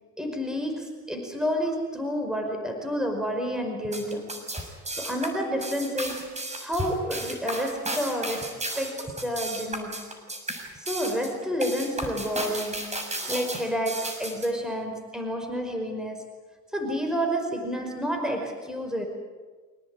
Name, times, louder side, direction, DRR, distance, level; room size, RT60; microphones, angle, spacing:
voice 1, 0.2-4.3 4.9-6.4 6.6-10.1 10.7-16.2 16.7-19.1, equal, ahead, 3 dB, 5.3 m, -30 dB
sound 1, 3.8-14.5, right 1 dB, 20° right, 6.6 m, -34 dB
27.0 x 18.5 x 9.2 m, 1.4 s
cardioid pair, 90°, 30 cm